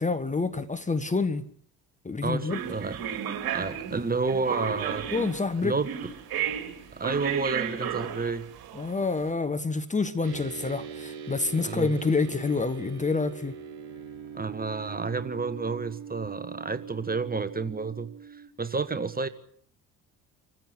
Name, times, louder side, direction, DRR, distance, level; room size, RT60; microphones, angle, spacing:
voice 1, 0.0-1.4 2.0-2.6 5.1-5.8 8.7-13.5, left 4 dB, 15° left, 1.3 m, -27 dB
voice 2, 2.2-3.0 3.5-5.1 5.6-5.9 6.9-8.5 11.6-11.9 14.3-19.3, right 4 dB, 20° right, 1.5 m, -30 dB
sound 1, 2.5-9.2, right 9 dB, 55° right, 3.3 m, -33 dB
sound 2, 10.2-18.5, right 7 dB, 70° right, 1.9 m, -42 dB
26.0 x 15.0 x 8.4 m
figure-of-eight pair, 45°, 44 cm